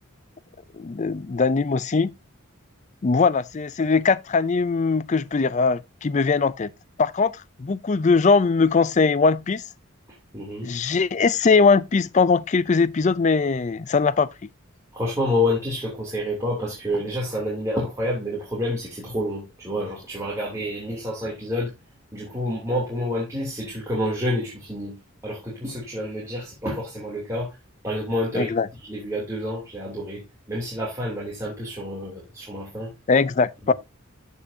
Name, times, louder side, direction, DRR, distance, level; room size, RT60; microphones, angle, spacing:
voice 1, 0.8-2.1 3.0-6.7 7.0-9.6 10.6-14.3 28.4-28.7 33.1-33.7, left 4 dB, 35° left, 0.4 m, -21 dB
voice 2, 10.3-10.7 14.9-21.7 22.1-25.0 25.2-27.6 27.8-28.5 28.8-30.2 30.5-32.9 33.6-33.7, left 1 dB, 15° right, 3.1 m, -28 dB
14.0 x 5.6 x 2.7 m
head